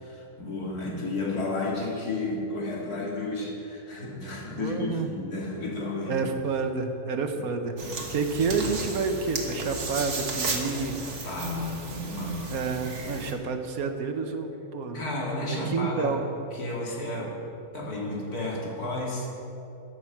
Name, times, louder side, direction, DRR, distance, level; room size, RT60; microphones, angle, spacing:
voice 1, 0.0-6.2 11.0-12.5 14.9-16.1 16.5-17.3 17.7-19.3, left 2 dB, 85° left, -3 dB, 3.0 m, -32 dB
voice 2, 4.6-5.1 6.1-10.9 12.5-15.0 15.5-16.2, right 4 dB, 70° right, 6 dB, 1.5 m, -29 dB
sound 1, 7.8-13.3, right 2 dB, 50° right, 1.7 m, -34 dB
14.0 x 9.5 x 5.8 m, 2.8 s
omnidirectional pair, 1.6 m